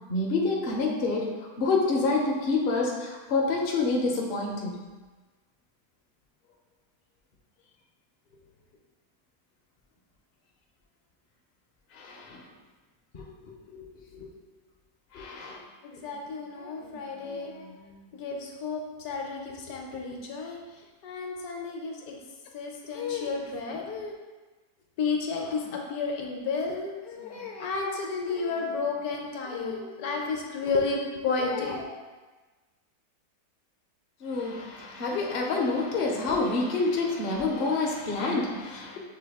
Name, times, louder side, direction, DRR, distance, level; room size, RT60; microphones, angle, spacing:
voice 1, 0.1-1.3 1.6-4.8 11.9-12.4 13.1-14.3 15.1-15.6 34.2-39.0, left 3 dB, 55° left, -1 dB, 0.6 m, -28 dB
voice 2, 15.8-22.2 22.5-24.1 25.0-31.9, left 4 dB, 70° left, 0 dB, 1.1 m, -32 dB
6.3 x 2.3 x 3.4 m, 1.3 s
omnidirectional pair, 1.7 m